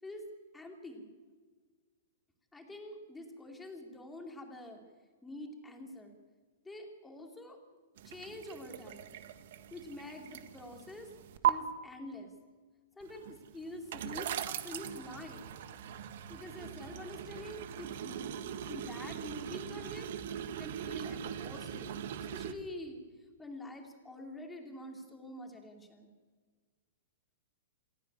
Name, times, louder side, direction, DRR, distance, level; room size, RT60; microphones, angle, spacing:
voice 1, 0.5-1.1 2.5-4.8 5.2-6.2 6.6-7.6 8.0-9.1 9.7-11.1 11.4-12.3 13.0-15.5 16.3-23.0 23.4-26.1, left 1 dB, 5° left, 3 dB, 2.9 m, -46 dB
sound 1, 8.0-11.5 13.0-22.5, right 10 dB, 60° right, 1.6 m, -39 dB
27.5 x 10.0 x 9.9 m, 1.5 s
hypercardioid pair, 155°, 0 cm